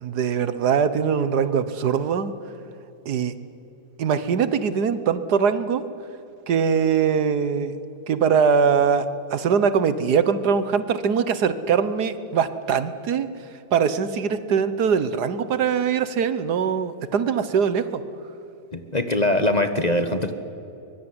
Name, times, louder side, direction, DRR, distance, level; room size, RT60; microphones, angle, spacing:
voice 1, 0.0-2.3 3.0-3.3 4.0-5.8 6.5-7.8 8.1-13.3 13.7-18.0, right 6 dB, 75° right, 13 dB, 1.6 m, -22 dB
voice 2, 18.7-20.4, left 1 dB, 25° left, 9 dB, 1.2 m, -22 dB
23.5 x 23.0 x 9.7 m, 2.9 s
omnidirectional pair, 1.8 m